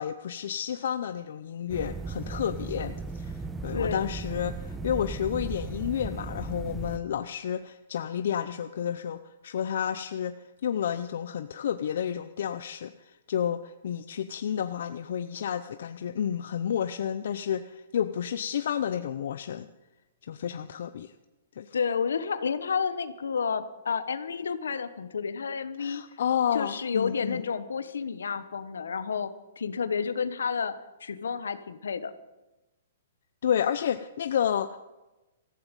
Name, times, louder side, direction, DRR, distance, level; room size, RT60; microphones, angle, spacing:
voice 1, 0.0-10.3 10.6-19.7 20.3-21.1 21.6-21.7 25.8-27.4 33.4-34.8, left 9 dB, 70° left, 10 dB, 0.6 m, -31 dB
sound 1, 1.7-7.0, right 3 dB, 10° right, 1.1 m, -36 dB
voice 2, 3.7-4.1 21.7-26.0 26.5-30.7 31.0-32.1, left 6 dB, 85° left, 13 dB, 1.2 m, -30 dB
18.0 x 14.5 x 5.4 m, 1.1 s
hypercardioid pair, 135°, 0 cm